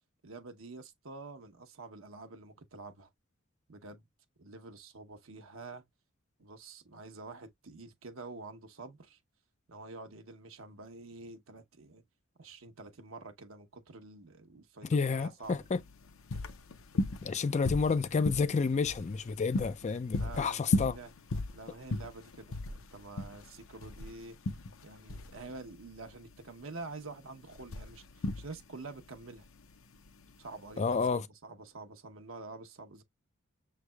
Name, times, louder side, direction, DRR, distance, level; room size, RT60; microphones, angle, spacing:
voice 1, 0.2-3.1 3.7-4.1 4.4-5.8 6.4-9.2 9.7-12.0 12.4-15.7 20.2-21.1 21.5-24.4 24.8-29.5 30.4-33.0, right 3 dB, 70° right, 0.9 m, -47 dB
voice 2, 14.9-15.8 17.2-20.9 30.8-31.2, left 5 dB, 35° left, 0.4 m, -30 dB
sound 1, 15.4-31.1, left 2 dB, 75° left, 0.7 m, -37 dB
6.2 x 3.3 x 2.2 m
head